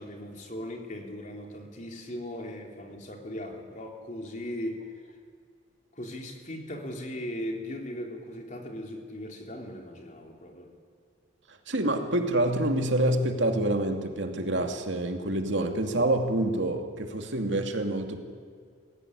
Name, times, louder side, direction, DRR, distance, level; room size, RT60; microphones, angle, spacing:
voice 1, 0.0-4.9 5.9-10.7, left 1 dB, 40° left, 2 dB, 3.5 m, -38 dB
voice 2, 11.7-18.2, right 1 dB, 70° right, 4 dB, 2.4 m, -27 dB
24.0 x 16.5 x 10.0 m, 2.1 s
head